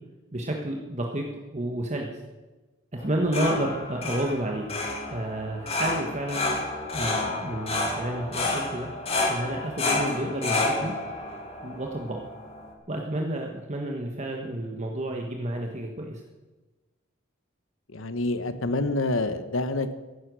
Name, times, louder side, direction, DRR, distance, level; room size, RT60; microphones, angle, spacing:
voice 1, 0.3-1.3 1.5-2.2 2.9-4.7 5.1-6.5 6.9-8.9 9.3-10.9 11.6-12.2 12.9-16.2, right 1 dB, 35° right, 1 dB, 1.5 m, -30 dB
sound 1, 3.0-12.7, left 2 dB, 30° left, 2.6 m, -30 dB
voice 2, 17.9-19.9, left 2 dB, 80° left, 11 dB, 1.2 m, -27 dB
14.5 x 11.5 x 6.3 m, 1.2 s
head